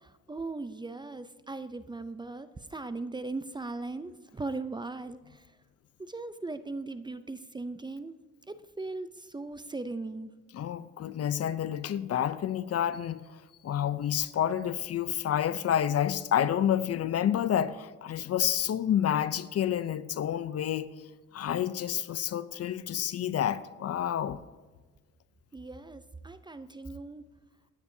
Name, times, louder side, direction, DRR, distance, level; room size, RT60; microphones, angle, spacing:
voice 1, 0.0-5.5 6.0-8.2 8.5-10.3 25.5-27.2, right 3 dB, 15° right, 0.5 m, -39 dB
voice 2, 10.5-13.2 13.6-20.9 21.3-24.4, left 10 dB, 55° left, 0.6 m, -29 dB
18.5 x 9.7 x 2.7 m
cardioid pair, 90°, 30 cm